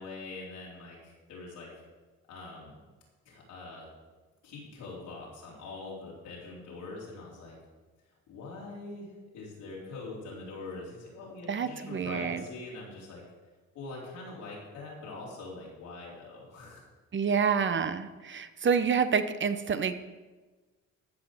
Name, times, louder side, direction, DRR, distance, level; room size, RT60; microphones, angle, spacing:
voice 1, 0.0-1.7 2.3-2.8 3.2-3.9 4.4-7.5 8.3-13.2 13.7-16.8, left 3 dB, 90° left, -5 dB, 4.5 m, -43 dB
voice 2, 11.5-12.4 17.1-19.9, right 6 dB, 40° right, 10 dB, 0.9 m, -28 dB
14.0 x 6.0 x 6.8 m, 1.3 s
cardioid pair, 90°, 30 cm